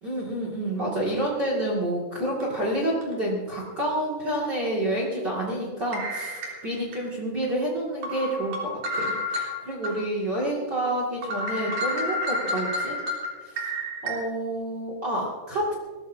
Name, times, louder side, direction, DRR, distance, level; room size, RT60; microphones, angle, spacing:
voice 1, 0.0-13.0 13.4-13.7 14.0-15.7, right 1 dB, 35° right, -4 dB, 2.5 m, -29 dB
sound 1, 2.4-2.6 3.0-3.1 4.3-4.5 5.9-7.0 7.4-7.5 8.0-9.9 10.3-10.4 10.8-10.9 11.2-14.1, left 1 dB, 55° right, 4.6 m, -30 dB
22.0 x 18.0 x 2.8 m, 1.5 s
omnidirectional pair, 4.1 m